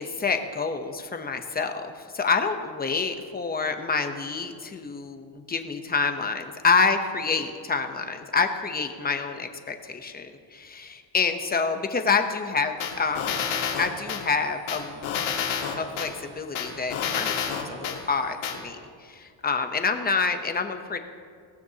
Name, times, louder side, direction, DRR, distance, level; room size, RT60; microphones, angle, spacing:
voice 1, 0.0-13.5 13.8-15.1 15.8-21.0, left 5 dB, 20° left, 6 dB, 0.7 m, -27 dB
sound 1, 12.8-14.2 14.7-16.1 16.6-18.0 18.4-18.6, left 7 dB, 85° left, 2.4 m, -28 dB
21.0 x 18.0 x 2.8 m, 2.1 s
cardioid pair, 170°, 46 cm